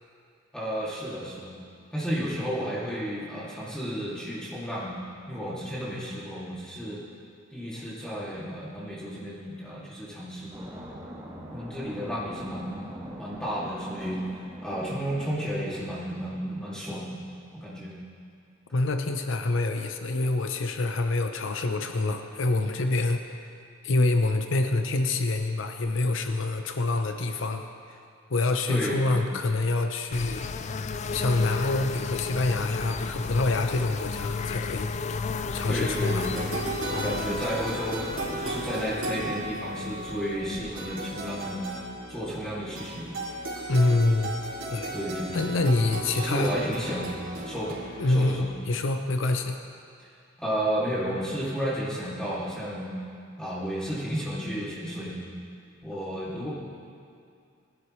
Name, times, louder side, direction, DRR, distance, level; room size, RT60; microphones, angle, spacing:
voice 1, 0.5-1.5 1.9-4.9 5.3-7.0 7.5-10.7 11.5-12.7 13.0-17.2 17.6-17.9 28.7-29.3 35.7-36.5 36.9-41.6 42.1-43.2 44.9-45.5 46.1-47.8 48.1-48.5 50.4-53.0 53.4-55.2 55.8-56.5, equal, 5° left, -9 dB, 2.5 m, -32 dB
sound 1, 10.5-16.9, equal, 20° right, 1.6 m, -43 dB
voice 2, 18.7-23.4 23.8-28.0 28.3-30.6 31.1-34.9 35.5-36.3 43.7-44.3 44.7-44.9 45.3-46.5 48.0-49.6, left 2 dB, 70° left, 6 dB, 0.7 m, -26 dB
sound 2, 30.1-40.7, left 4 dB, 35° left, 0.3 m, -33 dB
sound 3, 35.3-48.5, right 1 dB, 85° right, 3.2 m, -36 dB
20.0 x 12.0 x 3.2 m, 2.4 s
head